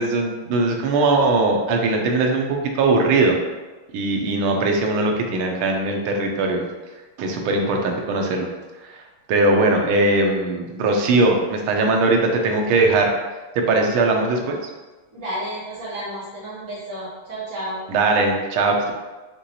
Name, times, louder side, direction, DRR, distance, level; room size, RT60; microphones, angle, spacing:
voice 1, 0.0-3.4 3.9-6.6 7.2-8.5 8.8-8.9 9.3-13.1 13.5-14.6 17.9-18.9, right 2 dB, 80° right, 2 dB, 1.5 m, -20 dB
voice 2, 15.1-17.8, right 1 dB, 40° right, -10 dB, 1.8 m, -31 dB
5.3 x 3.0 x 2.8 m, 1.2 s
omnidirectional pair, 2.4 m